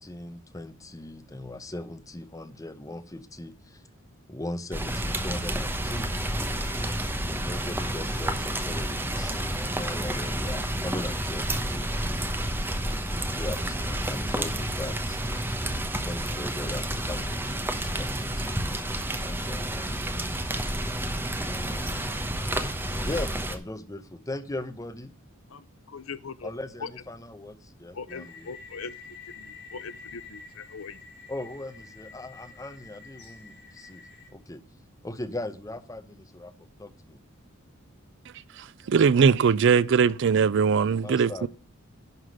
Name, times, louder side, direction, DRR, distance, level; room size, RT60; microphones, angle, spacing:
voice 1, 0.0-3.8 4.3-6.1 7.3-11.9 12.6-15.2 16.0-18.6 19.2-19.9 21.4-22.1 23.0-25.1 26.4-28.5 31.3-34.0 34.3-34.6 35.0-36.5 36.8-37.2 41.0-41.5, left 1 dB, 15° left, 0.8 m, -39 dB
Rain, 4.7-23.6, right 1 dB, 10° right, 1.0 m, -30 dB
voice 2, 25.5-26.5 26.8-26.9 27.9-28.9 29.3-31.0, left 5 dB, 75° left, 0.7 m, -40 dB
sound 1, 28.1-34.3, left 5 dB, 50° left, 2.0 m, -48 dB
voice 3, 38.9-41.5, right 6 dB, 60° right, 0.4 m, -20 dB
11.0 x 3.8 x 7.6 m
head